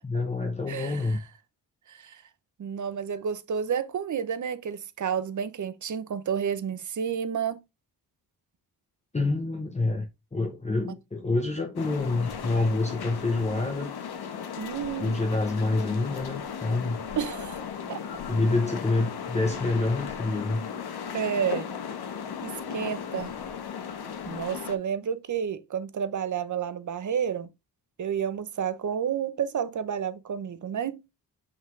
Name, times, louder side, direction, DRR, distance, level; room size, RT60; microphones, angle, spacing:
voice 1, 0.0-1.2 9.1-13.9 15.0-17.0 18.3-20.6, left 2 dB, 15° left, 0.9 m, -27 dB
voice 2, 0.7-1.2 1.9-2.2 2.6-7.6 14.6-15.2 17.2-18.0 21.1-21.7 22.4-23.3 24.3-27.5 28.0-31.0, right 7 dB, 45° right, 0.8 m, -30 dB
sound 1, 11.8-24.8, left 7 dB, 65° left, 1.3 m, -36 dB
5.9 x 5.6 x 3.2 m
wide cardioid pair, 120°, 41 cm